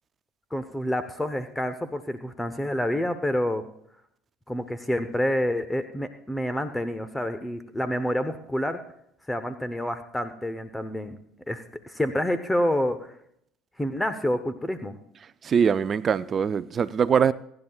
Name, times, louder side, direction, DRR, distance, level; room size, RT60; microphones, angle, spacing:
voice 1, 0.5-3.6 4.5-8.8 9.3-11.2 11.5-13.1 13.8-14.9, left 1 dB, 10° left, 0.9 m, -28 dB
voice 2, 15.4-17.3, right 7 dB, 40° right, 0.4 m, -22 dB
27.5 x 10.5 x 2.4 m
hypercardioid pair, 70°, 0 cm